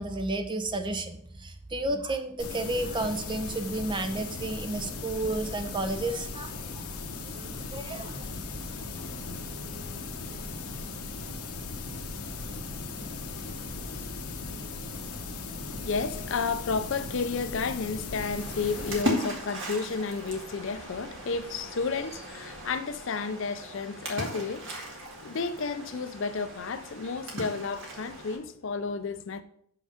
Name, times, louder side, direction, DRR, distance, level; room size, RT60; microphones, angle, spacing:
voice 1, 0.0-6.8 7.3-8.3, right 2 dB, 20° right, 0.5 m, -32 dB
sound 1, 2.4-19.0, left 3 dB, 90° left, 0.9 m, -38 dB
voice 2, 15.9-29.4, left 4 dB, 60° left, 0.5 m, -32 dB
Splash splatter, 18.4-28.4, equal, 55° right, 1.7 m, -38 dB
6.2 x 5.8 x 5.0 m
head